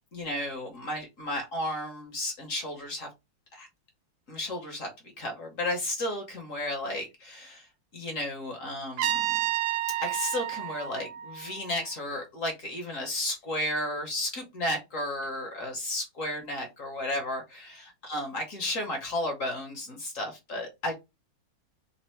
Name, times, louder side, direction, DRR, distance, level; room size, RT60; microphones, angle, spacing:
voice 1, 0.1-3.1 3.5-3.7 4.3-4.9 5.2-7.7 7.9-9.4 10.0-20.9, left 1 dB, 50° left, 1.1 m, -33 dB
Trumpet, 9.0-11.9, right 13 dB, 80° right, 1.4 m, -30 dB
4.1 x 2.0 x 4.3 m
omnidirectional pair, 2.2 m